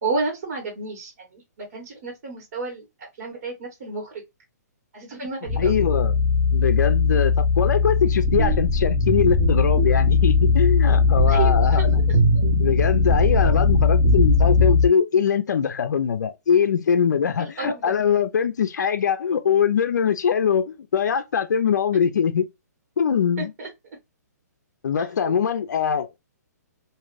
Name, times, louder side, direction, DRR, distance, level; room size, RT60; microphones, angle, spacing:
voice 1, 0.0-2.8 3.2-4.2 4.9-5.8 11.3-12.2 17.4-17.8 23.4-23.7 25.0-25.3, right 3 dB, 55° right, 1.5 m, -31 dB
sound 1, 5.5-14.9, left 5 dB, 5° left, 0.7 m, -20 dB
voice 2, 5.6-6.2 6.5-11.9 12.6-22.4 23.0-23.5 24.8-26.2, left 7 dB, 80° left, 0.4 m, -22 dB
sound 2, 8.2-14.7, right 4 dB, 30° right, 0.9 m, -25 dB
2.6 x 2.5 x 3.1 m
hypercardioid pair, 150°, 9 cm